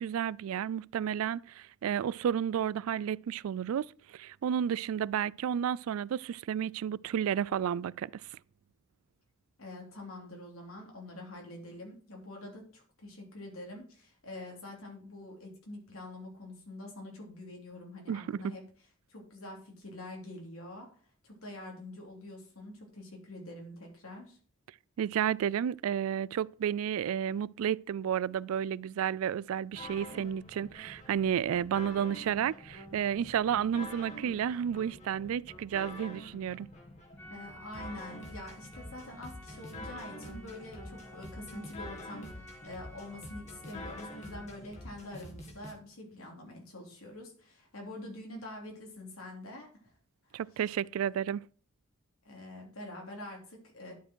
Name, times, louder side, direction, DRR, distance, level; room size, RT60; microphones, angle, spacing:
voice 1, 0.0-8.4 18.1-18.4 25.0-36.7 50.3-51.5, right 9 dB, 80° right, 0.3 m, -32 dB
voice 2, 9.6-18.6 19.1-20.9 21.2-24.4 37.3-49.9 50.3-50.4 52.2-53.9, left 1 dB, 85° left, 3.3 m, -46 dB
sound 1, 29.7-45.7, left 1 dB, 30° left, 1.7 m, -46 dB
sound 2, 37.2-44.5, left 1 dB, 10° left, 1.3 m, -53 dB
11.0 x 5.1 x 4.5 m
head